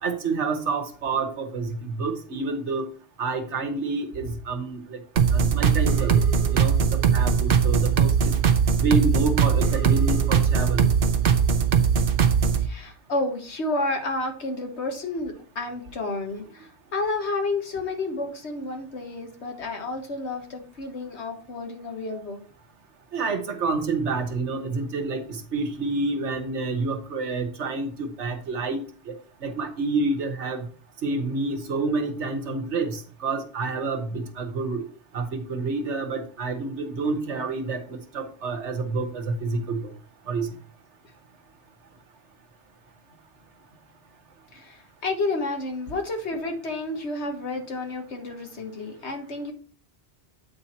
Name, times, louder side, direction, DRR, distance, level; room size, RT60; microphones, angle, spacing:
voice 1, 0.0-2.8 3.2-5.0 5.3-6.2 6.5-6.8 7.1-8.1 8.8-10.9 23.1-28.8 29.4-30.6 31.0-34.8 35.1-39.9 40.3-40.5, right 3 dB, 80° right, 7 dB, 1.4 m, -28 dB
sound 1, 5.2-12.7, right 7 dB, 55° right, 0.9 m, -20 dB
voice 2, 12.6-22.4 44.5-49.5, left 2 dB, 75° left, 4 dB, 1.7 m, -30 dB
8.6 x 4.3 x 4.3 m, 0.40 s
omnidirectional pair, 1.2 m